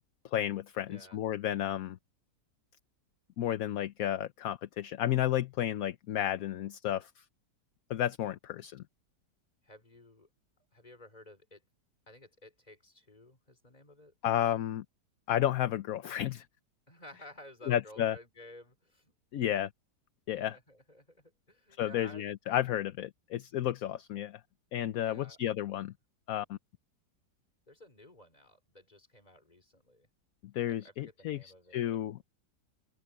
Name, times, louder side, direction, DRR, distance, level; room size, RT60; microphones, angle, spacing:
voice 1, 0.3-2.0 3.4-7.2 7.9-8.8 14.2-14.8 15.3-16.5 17.7-18.2 19.3-19.7 20.3-20.6 21.8-24.4 24.7-25.9 26.3-26.6 30.5-32.2, left 12 dB, 65° left, 1.0 m, -32 dB
voice 2, 0.9-1.2 9.6-10.3 10.7-11.6 12.1-14.1 16.9-19.1 20.3-22.3 25.0-25.4 27.7-30.1 30.7-32.0, left 1 dB, 25° left, 4.2 m, -54 dB
open air
omnidirectional pair, 1.8 m